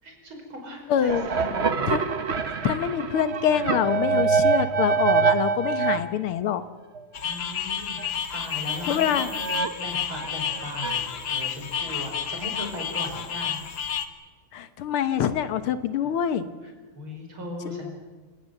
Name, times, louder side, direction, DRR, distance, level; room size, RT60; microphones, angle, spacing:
voice 1, 0.0-1.6 7.2-8.0 8.3-9.5 9.8-13.6 16.6-18.0, left 1 dB, 70° right, 2 dB, 6.2 m, -38 dB
voice 2, 0.9-1.3 1.9-2.0 2.5-6.6 8.9-9.3 14.5-16.5 17.7-17.9, left 9 dB, 80° left, 12 dB, 2.0 m, -25 dB
sound 1, 1.1-6.0 7.0-7.1 7.3-7.4 8.0-8.1 9.3-9.7 10.1-11.1, right 5 dB, 40° right, 1.1 m, -25 dB
sound 2, 7.1-14.1, left 8 dB, 65° left, 2.1 m, -30 dB
29.0 x 18.0 x 7.8 m, 1.3 s
omnidirectional pair, 2.4 m